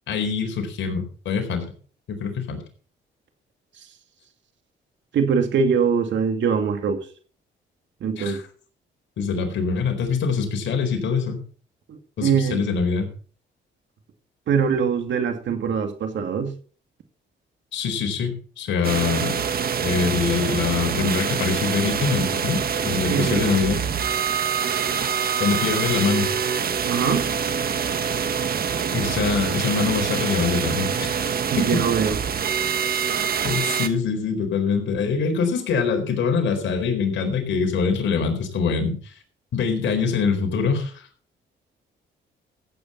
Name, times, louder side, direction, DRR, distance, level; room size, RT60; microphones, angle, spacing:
voice 1, 0.1-1.7 2.1-2.6 8.2-8.4 9.2-11.4 12.2-13.1 17.7-19.4 19.8-23.8 25.4-26.3 28.9-31.3 33.4-39.1 39.5-41.0, left 5 dB, 70° left, 4 dB, 4.3 m, -24 dB
voice 2, 5.1-7.1 8.0-8.4 11.9-12.6 14.5-16.5 23.0-23.5 26.8-27.3 31.4-32.2, right 6 dB, 70° right, 6 dB, 2.5 m, -23 dB
sound 1, 18.8-33.9, right 7 dB, 50° right, 1.6 m, -25 dB
15.0 x 8.8 x 4.3 m, 0.40 s
cardioid pair, 90°, 20 cm